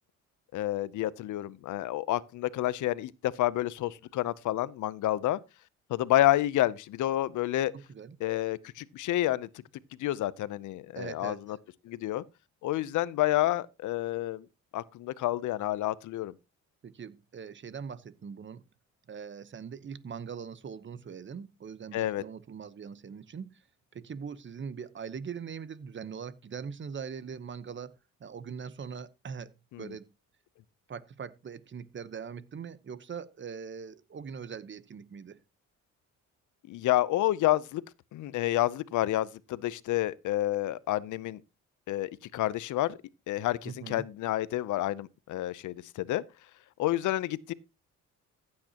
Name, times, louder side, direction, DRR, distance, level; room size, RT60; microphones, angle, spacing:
voice 1, 0.5-5.4 5.9-7.7 8.2-9.5 10.0-11.6 11.8-12.2 12.6-14.4 14.7-16.3 21.9-22.2 29.7-29.9 36.7-37.8 38.1-41.4 41.9-43.0 43.3-46.2 46.8-47.5, left 14 dB, 75° left, 0.7 m, -29 dB
voice 2, 7.7-8.2 10.9-11.4 16.8-18.6 19.1-23.6 23.9-30.1 30.9-35.4 43.6-44.1, right 6 dB, 40° right, 1.0 m, -41 dB
15.0 x 8.6 x 2.9 m
cardioid pair, 90°, 30 cm